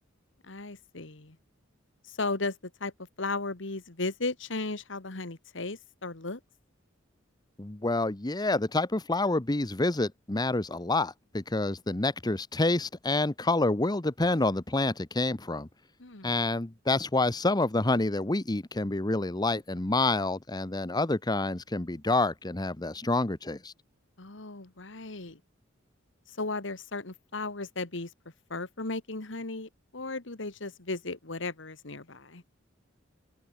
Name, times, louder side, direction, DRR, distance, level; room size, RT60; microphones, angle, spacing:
voice 1, 0.4-1.4 2.1-2.9 3.2-6.4 16.0-16.4 24.2-25.4 26.3-28.1 28.5-32.4, left 3 dB, 70° left, 1.9 m, -35 dB
voice 2, 7.6-15.7 16.2-23.7, left 2 dB, 20° left, 1.0 m, -28 dB
open air
head